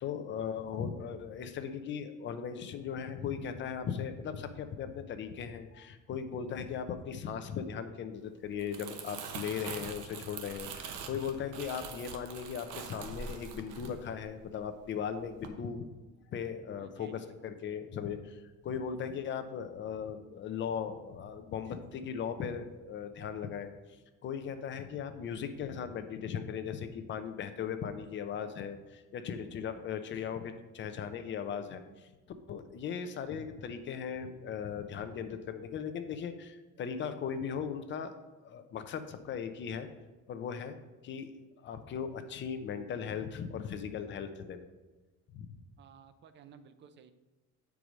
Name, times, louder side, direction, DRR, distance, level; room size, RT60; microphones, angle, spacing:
voice 1, 0.0-15.9 16.3-23.7 24.2-32.1 32.5-38.1 38.4-39.9 40.3-40.8 41.0-41.3 41.6-44.6 45.3-45.5, left 7 dB, 35° left, 9 dB, 0.6 m, -38 dB
Crumpling crinkling, 8.4-14.8 15.2-15.5, right 6 dB, 70° right, 1.0 m, -44 dB
voice 2, 16.7-17.8 45.8-47.1, right 7 dB, 35° right, 11 dB, 0.5 m, -56 dB
8.6 x 4.7 x 5.1 m, 1.2 s
cardioid pair, 170°, 32 cm